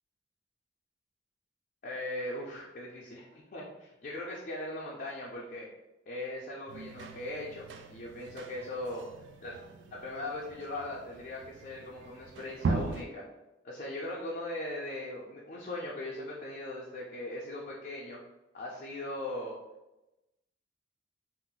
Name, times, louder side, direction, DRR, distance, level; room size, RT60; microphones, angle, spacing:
voice 1, 1.8-5.7 6.1-9.0 9.4-9.5 9.9-13.2 13.6-18.2 18.5-19.6, left 1 dB, 50° left, -3 dB, 0.4 m, -39 dB
sound 1, 6.7-13.0, right 3 dB, 70° right, 0.3 m, -39 dB
2.4 x 2.0 x 3.7 m, 0.98 s
head